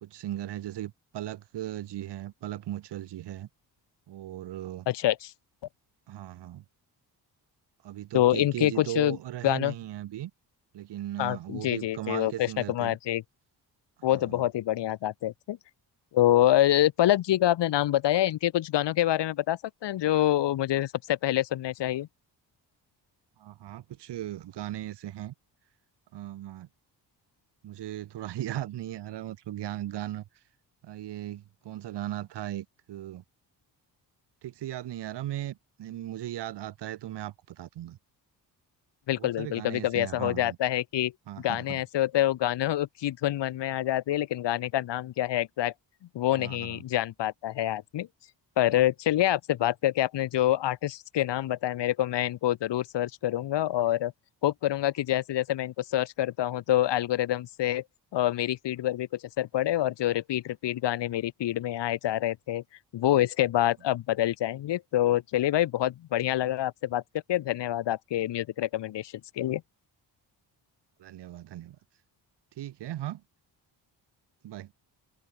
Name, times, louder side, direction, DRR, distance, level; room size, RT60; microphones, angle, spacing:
voice 1, 0.0-3.5 4.1-4.9 6.1-6.6 7.8-10.3 10.7-13.0 14.1-14.4 23.4-25.3 26.1-26.7 27.6-30.2 30.8-33.2 34.4-38.0 39.2-40.6 41.3-41.8 46.3-46.8 71.0-71.8 72.6-73.2 74.4-74.7, right 13 dB, 75° right, 1.3 m, -37 dB
voice 2, 4.9-5.3 8.1-9.2 9.4-9.7 11.2-13.2 14.0-15.6 16.1-22.1 39.1-45.7 46.1-48.1 48.6-54.1 54.4-57.8 58.1-59.1 59.4-62.6 62.9-67.0 67.3-69.6, left 13 dB, 85° left, 1.6 m, -26 dB
open air
wide cardioid pair, 150°, 41 cm